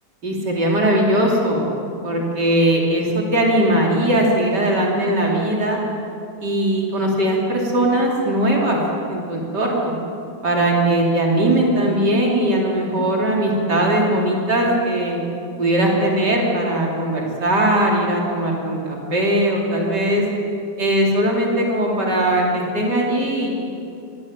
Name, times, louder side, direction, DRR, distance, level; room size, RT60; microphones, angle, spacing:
voice 1, 0.2-1.7 2.0-5.8 6.4-8.8 9.1-9.9 10.4-15.2 15.6-20.2 20.8-23.7, right 1 dB, 75° right, -2 dB, 4.0 m, -19 dB
26.5 x 20.5 x 7.5 m, 2.6 s
omnidirectional pair, 1.8 m